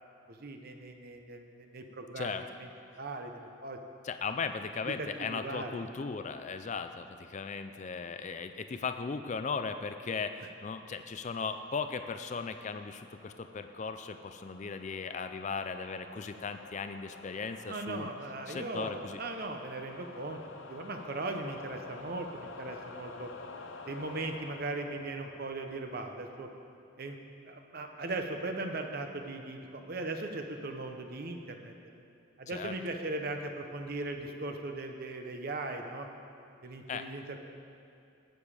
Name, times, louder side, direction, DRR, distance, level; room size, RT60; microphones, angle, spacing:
voice 1, 0.3-2.7 3.0-3.8 5.0-5.8 17.7-20.4 20.7-23.3 23.9-26.5 27.0-27.2 27.5-31.7 32.4-36.1 36.6-37.4, right 2 dB, 50° right, 5 dB, 0.7 m, -38 dB
voice 2, 4.0-18.1 18.5-19.2 32.5-32.7 36.9-37.1, left 5 dB, 35° left, 9 dB, 0.4 m, -37 dB
sound 1, 10.3-26.5, left 3 dB, 70° left, 0.8 m, -50 dB
18.5 x 7.1 x 4.9 m, 2.5 s
head